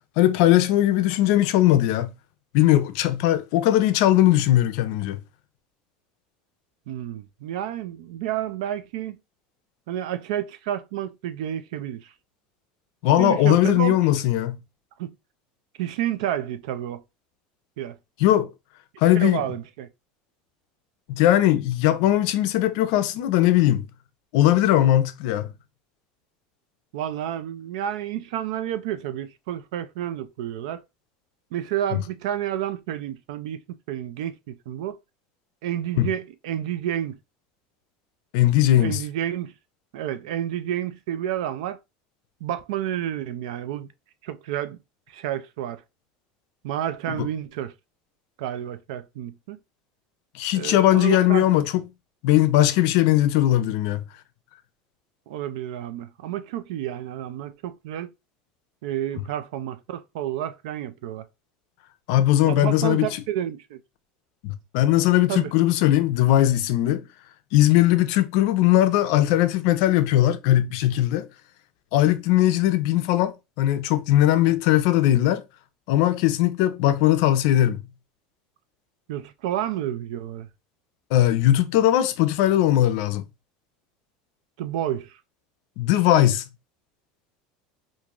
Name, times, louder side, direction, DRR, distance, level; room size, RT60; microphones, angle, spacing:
voice 1, 0.2-2.1 2.5-5.2 13.0-14.6 18.2-18.5 19.0-19.4 21.1-23.8 24.3-25.5 36.0-36.1 38.3-39.0 47.2-47.3 50.3-51.8 52.2-54.0 62.1-63.1 64.4-67.0 67.5-71.3 71.9-75.4 75.9-77.8 81.1-83.2 85.8-86.4, left 13 dB, 60° left, 0.5 m, -19 dB
voice 2, 6.9-9.2 9.9-12.1 13.2-14.0 15.0-15.1 15.8-17.0 17.8-18.0 19.1-19.9 26.9-30.8 31.5-33.6 33.9-35.0 35.6-37.2 38.8-39.5 39.9-41.8 42.4-43.9 44.2-44.8 45.1-45.8 46.6-47.7 48.4-49.6 50.5-51.5 55.3-58.1 58.8-61.3 62.5-63.8 65.3-65.5 79.1-80.5 84.6-85.2, right 11 dB, 80° right, 0.4 m, -30 dB
3.7 x 2.6 x 2.9 m
cardioid pair, 170°, 3 cm